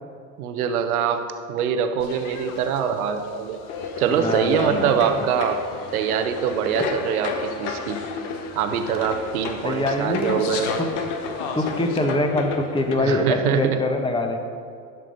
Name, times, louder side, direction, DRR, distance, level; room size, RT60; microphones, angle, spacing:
voice 1, 0.4-1.2 1.5-3.6 4.0-5.6 5.9-8.0 8.5-10.7 13.0-13.8, right 8 dB, 85° right, 7 dB, 0.8 m, -24 dB
sound 1, 2.0-12.0, left 5 dB, 80° left, 1.1 m, -39 dB
sound 2, 3.7-13.0, left 4 dB, 65° left, 1.3 m, -32 dB
voice 2, 4.1-5.2 9.6-10.4 10.8-10.9 11.5-14.4, left 2 dB, 10° left, 5 dB, 1.1 m, -24 dB
11.0 x 6.2 x 5.2 m, 2.3 s
hypercardioid pair, 90°, 42 cm